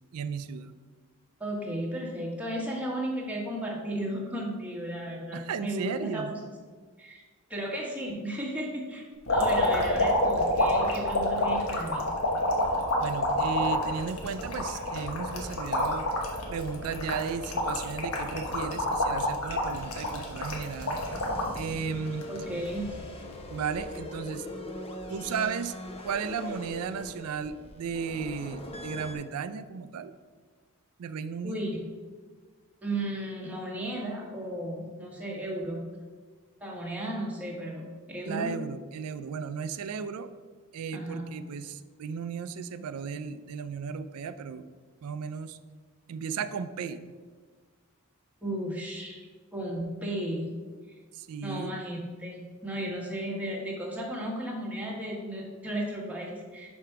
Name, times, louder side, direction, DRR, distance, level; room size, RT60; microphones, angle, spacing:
voice 1, 0.1-0.7 5.3-6.3 13.0-16.1 16.5-21.0 21.5-22.3 23.5-24.5 25.1-25.7 26.0-30.1 31.0-31.6 38.2-40.3 40.7-44.7 45.0-45.6 46.1-47.1 51.2-51.8, right 6 dB, 80° right, 13 dB, 0.4 m, -35 dB
voice 2, 1.4-6.5 7.0-7.2 7.5-9.0 9.3-12.0 22.3-23.0 31.4-31.8 32.8-35.8 36.6-38.5 40.9-41.2 48.4-49.2 49.5-50.5 51.4-56.7, right 1 dB, 5° right, -2 dB, 1.2 m, -34 dB
sound 1, 9.3-21.6 22.1-22.8 23.8-24.0, left 1 dB, 70° left, 1.1 m, -28 dB
sound 2, 19.7-29.2, left 1 dB, 25° left, 0.7 m, -42 dB
4.9 x 4.4 x 5.8 m, 1.5 s
head